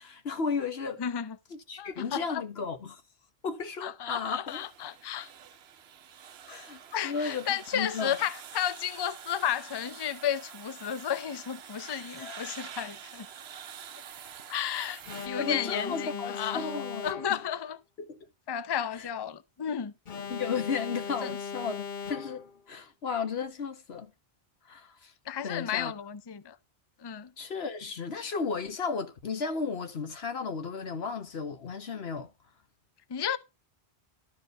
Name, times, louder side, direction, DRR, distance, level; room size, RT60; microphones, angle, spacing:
voice 1, 0.0-1.0 1.5-3.0 3.4-4.6 6.5-8.2 11.9-12.5 15.4-17.1 18.1-18.3 20.3-24.1 24.7-25.1 25.4-25.9 27.4-32.3, left 5 dB, 85° left, 1.5 m, -34 dB
voice 2, 1.0-1.4 1.8-2.4 3.8-5.3 6.9-13.3 14.5-17.8 18.5-19.9 21.2-21.3 25.3-26.6 27.0-27.3 33.1-33.4, left 9 dB, 30° left, 0.5 m, -33 dB
sound 1, 4.5-15.3, right 8 dB, 90° right, 1.0 m, -47 dB
Alarm, 15.1-17.6 20.1-22.6, left 6 dB, 55° left, 1.0 m, -38 dB
12.0 x 4.7 x 6.5 m
omnidirectional pair, 1.0 m